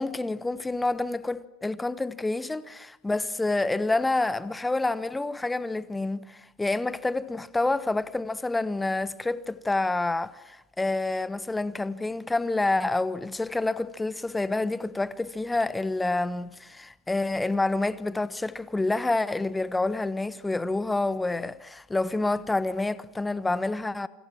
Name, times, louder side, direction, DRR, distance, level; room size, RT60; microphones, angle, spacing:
voice 1, 0.0-24.1, left 2 dB, 10° left, 1.2 m, -28 dB
28.5 x 26.0 x 7.4 m
figure-of-eight pair, 80°, 0 cm